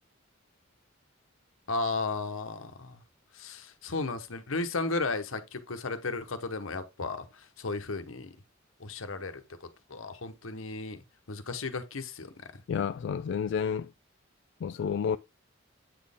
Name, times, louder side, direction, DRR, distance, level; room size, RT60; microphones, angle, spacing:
voice 1, 1.7-3.0 3.3-8.3 8.8-9.4 9.9-12.3, left 3 dB, 85° left, 1.1 m, -34 dB
voice 2, 12.7-13.9 14.6-15.2, left 7 dB, 60° left, 0.3 m, -30 dB
8.6 x 4.2 x 3.5 m
head